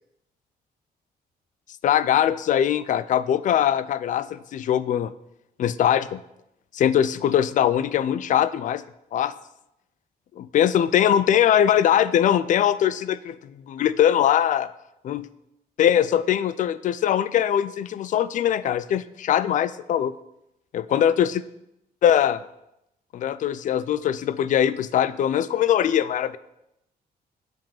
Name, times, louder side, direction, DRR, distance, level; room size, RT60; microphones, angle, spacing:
voice 1, 1.8-5.1 5.6-6.2 6.7-8.8 9.1-9.3 10.4-14.7 15.0-15.3 15.8-20.1 20.7-21.4 22.0-22.4 23.1-26.4, left 10 dB, 50° left, 16 dB, 0.4 m, -21 dB
7.8 x 5.3 x 7.0 m, 0.85 s
cardioid pair, 175°, 16 cm